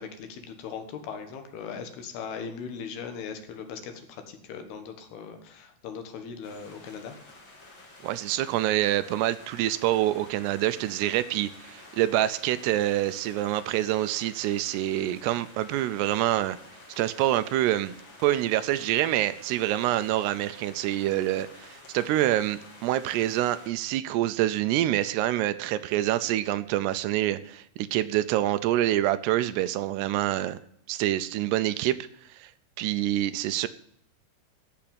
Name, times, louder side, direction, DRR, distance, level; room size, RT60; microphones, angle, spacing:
voice 1, 0.0-7.1, left 6 dB, 70° left, 7 dB, 3.3 m, -39 dB
sound 1, 6.4-23.7, left 2 dB, 35° left, 2.6 m, -50 dB
voice 2, 8.0-16.6 17.0-17.9 18.2-30.6 30.9-32.0 32.3-32.5 32.8-33.7, right 14 dB, 80° right, 13 dB, 2.6 m, -26 dB
14.5 x 6.1 x 8.6 m, 0.67 s
omnidirectional pair, 4.9 m